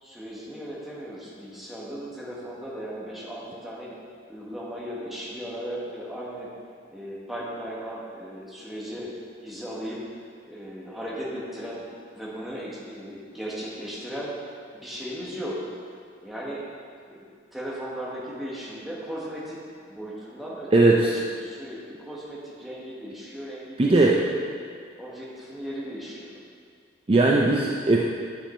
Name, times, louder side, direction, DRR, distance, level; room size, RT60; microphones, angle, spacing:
voice 1, 0.0-3.9 4.3-6.5 6.9-9.1 9.4-10.1 10.4-11.8 12.1-14.3 14.7-15.7 16.2-16.6 17.1-21.1 21.4-24.3 25.0-26.3, equal, ahead, -6 dB, 1.4 m, -36 dB
voice 2, 20.7-21.1 23.8-24.2 27.1-28.0, right 2 dB, 30° right, -2 dB, 0.5 m, -18 dB
8.7 x 6.1 x 4.3 m, 2.1 s
head